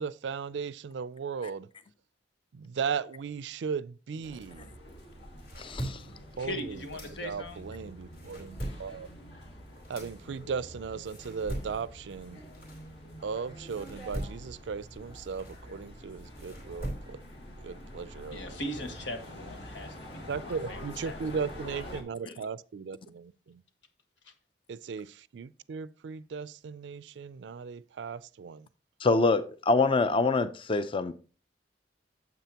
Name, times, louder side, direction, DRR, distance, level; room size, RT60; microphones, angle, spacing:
voice 1, 0.0-1.7 2.5-4.7 6.4-6.8 7.1-9.1 9.9-12.4 13.2-17.2 17.6-18.6 20.3-23.6 24.7-28.7, right 6 dB, 75° right, 0.4 m, -37 dB
sound 1, 4.2-22.0, equal, 65° left, 1.7 m, -47 dB
sound 2, 5.1-7.6 8.0-13.3 13.7-17.4, right 1 dB, 50° left, 3.3 m, -42 dB
voice 2, 5.6-6.0 29.0-31.1, left 3 dB, 30° left, 0.5 m, -25 dB
voice 3, 6.4-7.6 18.3-21.2 21.6-22.5 24.2-24.3, left 1 dB, 90° left, 1.4 m, -41 dB
9.1 x 7.6 x 2.9 m
head